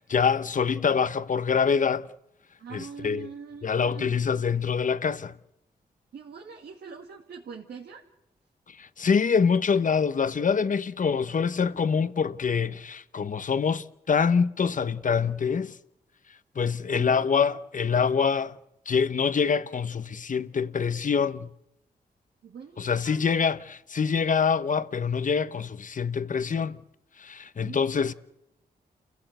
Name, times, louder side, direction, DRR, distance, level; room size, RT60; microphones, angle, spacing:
voice 1, 0.0-2.1 2.7-3.3 3.6-5.3 8.7-15.8 16.5-18.6 18.9-21.5 22.8-26.8 27.2-28.1, left 6 dB, 50° left, 1.0 m, -25 dB
voice 2, 2.6-4.1 6.1-8.0 16.9-17.6 22.4-23.2 27.6-28.1, right 6 dB, 85° right, 2.2 m, -43 dB
29.0 x 16.0 x 8.0 m
cardioid pair, 75°, 17 cm